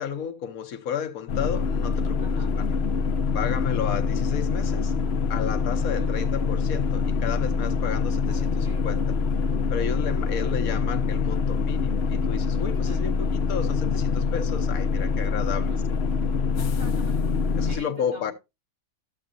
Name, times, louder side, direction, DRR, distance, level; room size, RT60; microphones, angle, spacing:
voice 1, 0.0-2.8 3.3-4.9 5.3-9.0 9.7-15.7 17.6-18.3, left 8 dB, 75° left, 1.3 m, -32 dB
sound 1, 1.3-17.8, left 5 dB, 60° left, 0.8 m, -25 dB
voice 2, 2.2-2.5 5.7-6.1 8.3-8.9 12.8-13.1 15.4-15.9 16.6-17.2 17.6-18.3, equal, 75° right, 4.6 m, -44 dB
12.5 x 7.8 x 2.6 m
omnidirectional pair, 1.5 m